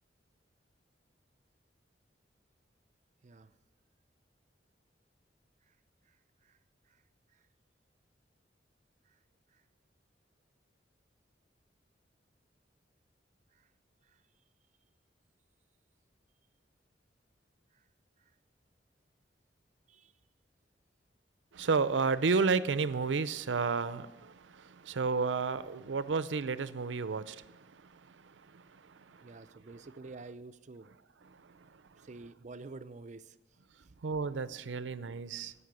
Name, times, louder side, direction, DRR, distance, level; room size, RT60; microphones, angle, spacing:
voice 1, 3.2-3.5 5.7-5.8 6.1-6.2 6.4-6.6 6.9-7.0 7.3-7.4 9.1-9.2 9.5-9.6 13.5-13.7 14.0-14.2 17.7-17.8 18.2-18.3 19.9-20.1 29.2-31.0 32.0-33.4 33.8-33.9, right 3 dB, 40° right, 12 dB, 0.5 m, -50 dB
voice 2, 21.5-29.3 31.3-32.1 34.0-35.5, right 4 dB, 85° right, 15 dB, 0.6 m, -32 dB
16.0 x 5.6 x 8.1 m, 1.1 s
head